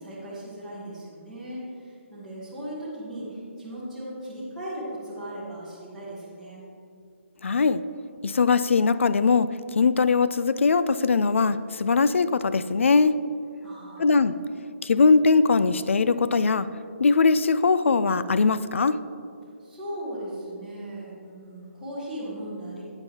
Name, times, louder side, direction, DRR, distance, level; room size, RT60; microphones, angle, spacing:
voice 1, 0.0-6.6 13.6-14.1 19.6-22.8, right 1 dB, ahead, -12 dB, 0.9 m, -37 dB
voice 2, 7.4-7.8 8.2-13.1 14.0-14.3 14.8-16.7 17.0-19.0, left 4 dB, 65° left, 14 dB, 0.3 m, -21 dB
8.9 x 8.8 x 2.8 m, 2.5 s
hypercardioid pair, 180°, 7 cm